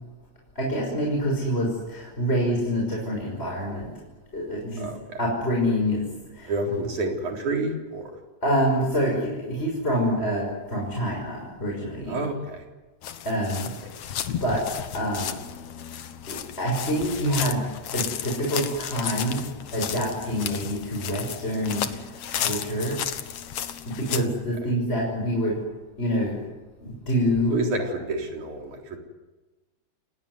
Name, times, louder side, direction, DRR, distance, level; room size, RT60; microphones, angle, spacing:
voice 1, 0.6-3.9 4.3-4.9 5.2-6.1 6.3-6.5 8.4-12.2 13.2-13.7 14.4-14.6 14.9-15.4 16.3-19.4 19.7-23.0 23.9-25.6 26.0-26.4 26.8-27.5, equal, 20° left, -2 dB, 5.9 m, -26 dB
voice 2, 4.8-5.2 6.4-8.1 12.1-12.6 27.5-29.0, right 2 dB, 80° right, 2 dB, 5.2 m, -29 dB
sound 1, 13.0-24.3, left 9 dB, 65° left, 2.4 m, -33 dB
29.5 x 18.0 x 9.7 m, 1.2 s
omnidirectional pair, 3.4 m